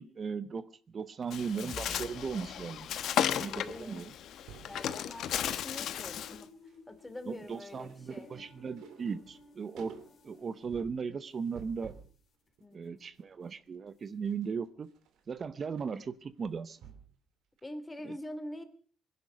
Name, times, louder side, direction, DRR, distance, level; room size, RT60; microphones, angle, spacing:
voice 1, 0.0-2.9 3.4-4.1 7.3-10.0 10.2-11.9 12.7-14.9 15.3-16.8 18.0-18.1, right 5 dB, 45° right, 14 dB, 0.8 m, -37 dB
sound 1, 1.0-3.2 3.4-3.7 4.0-4.8 5.3-6.0 6.3-12.2 12.6-17.2 17.6-17.7, right 7 dB, 85° right, 2.8 m, -55 dB
sound 2, 1.2-11.7, left 4 dB, 60° left, 3.6 m, -55 dB
Bird, 1.3-6.4, left 10 dB, 75° left, 1.0 m, -35 dB
voice 2, 3.0-4.0 4.7-6.5 6.9-8.3 12.6-13.1 17.6-18.6, left 1 dB, 15° left, 10 dB, 2.8 m, -45 dB
20.0 x 11.0 x 6.4 m, 0.43 s
cardioid pair, 90°, 0 cm